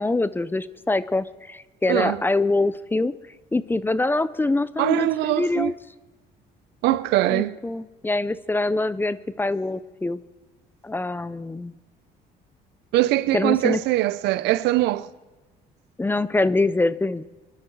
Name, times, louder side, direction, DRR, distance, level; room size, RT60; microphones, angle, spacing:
voice 1, 0.0-3.1 3.5-5.7 7.3-10.2 10.8-11.8 13.3-13.8 16.0-17.2, left 2 dB, 10° left, 0.5 m, -24 dB
voice 2, 1.9-2.2 4.8-5.7 6.8-7.6 12.9-15.1, right 16 dB, 85° right, 0.6 m, -22 dB
24.5 x 11.5 x 4.6 m
cardioid pair, 110°, 17 cm